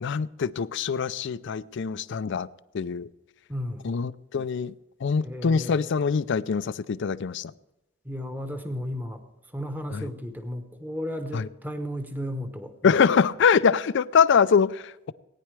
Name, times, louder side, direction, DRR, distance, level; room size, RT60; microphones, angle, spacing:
voice 1, 0.0-2.5 2.7-3.1 3.8-4.7 5.0-7.5 9.9-10.1 11.3-11.5 12.8-15.1, left 6 dB, 60° left, 0.4 m, -24 dB
voice 2, 3.5-3.9 5.2-5.9 8.0-9.2 9.5-13.0, equal, 10° right, 1.0 m, -34 dB
18.0 x 9.9 x 3.3 m
head